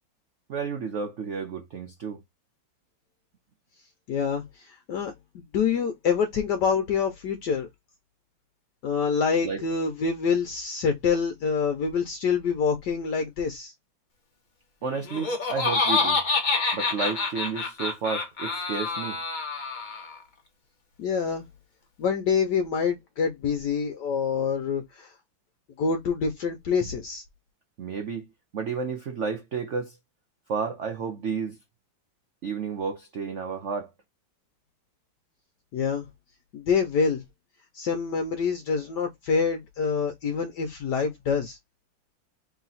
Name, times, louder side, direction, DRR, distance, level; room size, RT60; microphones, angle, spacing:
voice 1, 0.5-2.2 9.4-9.6 14.8-16.2 16.7-19.2 27.8-28.3 28.5-30.0 30.5-31.6 32.4-33.9, right 5 dB, 75° right, 0.6 m, -31 dB
voice 2, 4.1-5.1 5.5-7.7 8.8-13.7 21.0-21.4 22.0-25.1 25.8-27.2 35.7-36.1 36.5-37.2 37.7-41.6, left 6 dB, 65° left, 1.2 m, -26 dB
Laughter, 14.9-20.2, left 3 dB, 40° left, 0.7 m, -27 dB
3.2 x 3.0 x 4.0 m
omnidirectional pair, 2.1 m